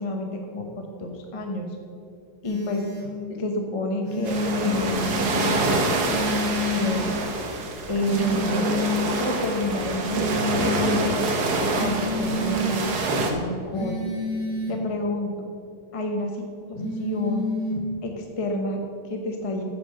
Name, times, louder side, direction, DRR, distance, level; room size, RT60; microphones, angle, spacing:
voice 1, 0.0-1.8 2.4-2.8 3.3-6.0 6.3-7.1 7.4-7.5 7.9-8.7 9.2-11.3 11.6-14.0 14.7-15.5 15.9-16.3 16.9-17.5 18.0-19.6, left 1 dB, 30° left, 2 dB, 0.6 m, -29 dB
sound 1, 2.4-3.1 4.0-5.1 6.0-7.1 8.0-9.1 10.0-11.1 11.7-12.8 13.7-14.8 16.7-17.8, left 2 dB, 50° left, 2.7 m, -29 dB
sound 2, 4.3-13.3, right 2 dB, 60° right, 1.6 m, -26 dB
9.2 x 7.5 x 6.3 m, 2.5 s
omnidirectional pair, 2.0 m